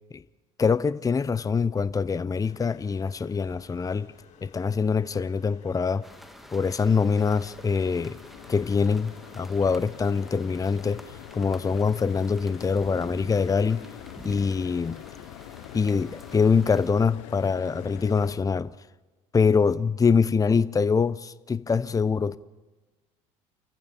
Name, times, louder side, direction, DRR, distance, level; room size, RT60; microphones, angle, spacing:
voice 1, 0.6-4.1 4.4-6.1 6.5-8.2 8.5-11.0 11.3-13.9 14.2-15.0 15.7-18.7 19.3-22.4, left 5 dB, 20° left, 0.7 m, -24 dB
sound 1, 2.3-18.3, left 6 dB, 45° left, 4.2 m, -55 dB
sound 2, 6.0-16.9, equal, ahead, 1.9 m, -48 dB
sound 3, 7.8-18.4, left 17 dB, 75° left, 0.9 m, -44 dB
29.0 x 15.0 x 6.9 m
hypercardioid pair, 70°, 17 cm